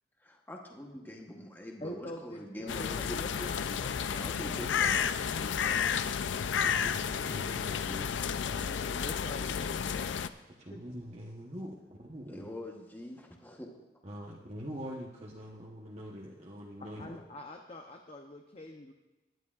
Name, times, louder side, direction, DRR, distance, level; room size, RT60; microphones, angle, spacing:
voice 1, 0.2-5.0 12.3-13.8 14.2-14.4, left 1 dB, 10° left, 1 dB, 1.0 m, -44 dB
voice 2, 1.8-5.9 8.4-10.2 10.7-10.8 16.8-18.9, left 1 dB, 35° left, 3 dB, 0.7 m, -46 dB
sound 1, 2.7-10.3, left 7 dB, 85° left, 0.4 m, -32 dB
voice 3, 6.6-8.2 8.5-8.7 10.6-12.5 14.0-17.2, equal, 35° right, -3 dB, 1.0 m, -44 dB
18.5 x 11.0 x 2.4 m, 1.1 s
head